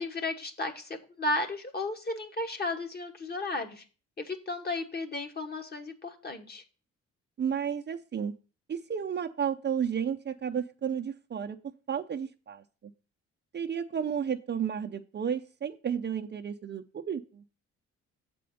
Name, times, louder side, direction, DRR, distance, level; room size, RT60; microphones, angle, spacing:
voice 1, 0.0-3.8 4.2-6.6, left 2 dB, 30° left, 5 dB, 1.3 m, -34 dB
voice 2, 7.4-8.3 8.7-11.6 11.9-12.6 13.5-17.4, right 8 dB, 35° right, 5 dB, 0.6 m, -32 dB
7.6 x 4.3 x 5.2 m, 0.35 s
cardioid pair, 90°, 30 cm